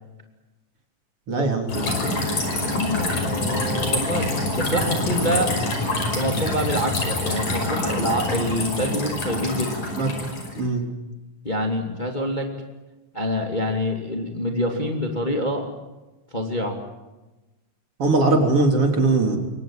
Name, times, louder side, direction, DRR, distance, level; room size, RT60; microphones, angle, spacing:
voice 1, 1.3-2.1 10.0-10.1 10.6-10.8 18.0-19.4, right 3 dB, 50° right, 3 dB, 4.3 m, -20 dB
sound 1, 1.7-10.6, left 2 dB, 75° left, 6.8 m, -26 dB
voice 2, 1.8-2.2 2.7-4.3 4.5-5.5 6.1-9.7 11.4-12.5 13.1-15.6 16.3-16.8, equal, 15° left, 3 dB, 2.6 m, -26 dB
28.0 x 24.0 x 7.6 m, 1.1 s
omnidirectional pair, 3.3 m